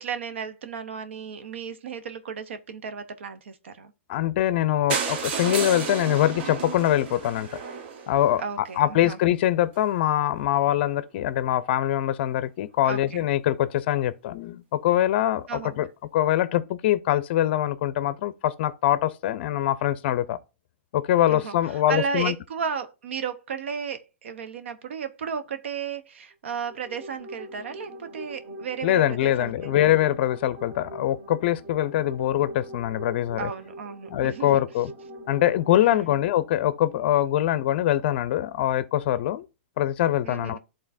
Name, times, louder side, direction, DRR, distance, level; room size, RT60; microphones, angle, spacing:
voice 1, 0.0-3.9 8.4-9.2 12.8-13.3 15.5-15.7 21.3-28.9 29.2-29.9 33.4-34.6 35.8-36.2 40.2-40.6, right 6 dB, 80° right, 0.7 m, -34 dB
voice 2, 4.1-7.6 8.1-15.9 16.1-20.4 20.9-22.3 28.8-33.5 34.1-34.9 35.3-39.5 39.8-40.6, left 13 dB, 55° left, 0.5 m, -23 dB
sound 1, 4.9-8.8 9.4-9.5 9.8-9.9 10.2-10.3 10.4-10.5, right 6 dB, 60° right, 1.0 m, -32 dB
sound 2, 26.5-35.9, right 1 dB, 30° right, 1.4 m, -42 dB
11.0 x 3.8 x 2.5 m
hypercardioid pair, 130°, 7 cm